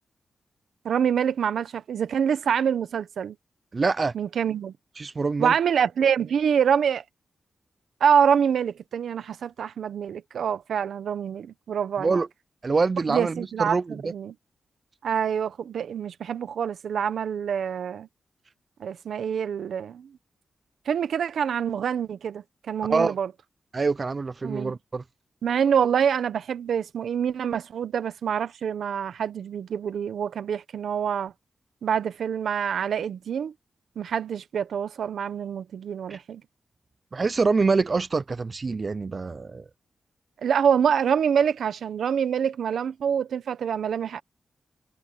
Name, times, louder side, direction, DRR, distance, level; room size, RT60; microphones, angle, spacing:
voice 1, 0.8-3.4 4.1-4.7 5.4-7.0 8.0-12.2 13.1-14.3 15.0-18.1 18.8-20.1 20.9-23.3 24.4-24.8 25.4-31.3 31.8-33.5 34.0-36.4 40.4-44.2, right 7 dB, 90° right, 1.0 m, -26 dB
voice 2, 3.7-4.1 5.0-5.5 12.0-12.3 12.6-14.1 22.9-23.1 23.7-25.0 36.1-36.2 37.1-39.6, right 4 dB, 40° right, 0.4 m, -25 dB
cardioid pair, 90°, 0 cm